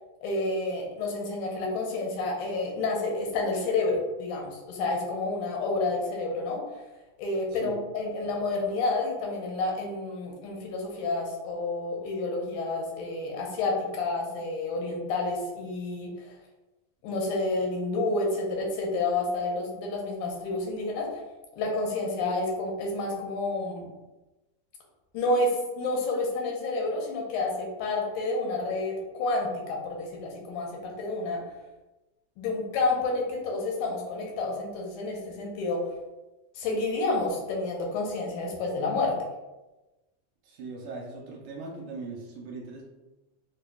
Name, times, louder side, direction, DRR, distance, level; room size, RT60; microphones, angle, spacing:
voice 1, 0.2-6.6 7.2-16.3 17.0-21.1 21.6-23.9 25.1-31.4 32.4-35.8 36.6-39.2, left 2 dB, 85° left, -1 dB, 2.2 m, -29 dB
voice 2, 40.4-42.8, right 3 dB, 75° right, -2 dB, 1.9 m, -40 dB
5.3 x 2.2 x 2.3 m, 1.1 s
omnidirectional pair, 3.5 m